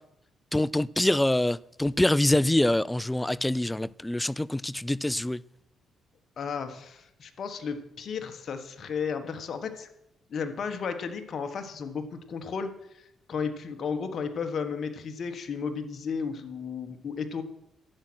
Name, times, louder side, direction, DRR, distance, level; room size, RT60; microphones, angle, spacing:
voice 1, 0.5-5.4, left 1 dB, 10° left, 0.3 m, -25 dB
voice 2, 6.4-9.9 10.3-12.7 13.3-17.4, left 6 dB, 55° left, 1.4 m, -33 dB
11.5 x 8.7 x 6.2 m
cardioid pair, 90°, 0 cm